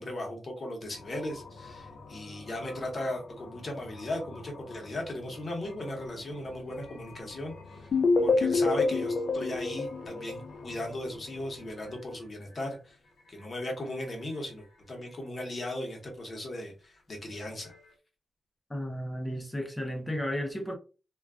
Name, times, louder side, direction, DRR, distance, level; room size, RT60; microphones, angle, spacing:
voice 1, 0.0-7.9 8.2-13.0 13.3-17.7, left 1 dB, 35° left, 0.9 m, -37 dB
sound 1, 0.9-18.0, left 3 dB, 70° left, 0.8 m, -50 dB
sound 2, 7.9-10.9, left 3 dB, 50° left, 0.4 m, -26 dB
voice 2, 18.7-20.7, equal, 10° left, 0.6 m, -33 dB
2.3 x 2.2 x 3.5 m
wide cardioid pair, 150°, 0 cm